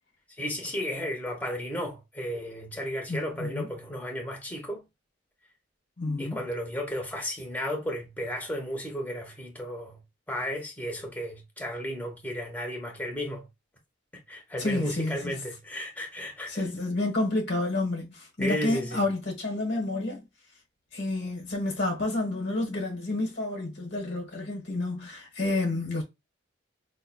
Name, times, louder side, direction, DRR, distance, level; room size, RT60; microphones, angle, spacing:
voice 1, 0.4-4.8 6.2-10.0 10.3-13.5 14.1-16.6 18.4-19.1, equal, 10° left, 0.8 m, -34 dB
voice 2, 3.1-3.7 6.0-6.4 14.6-15.3 16.5-20.2 20.9-26.0, left 2 dB, 60° left, 1.2 m, -29 dB
5.5 x 2.1 x 2.2 m
head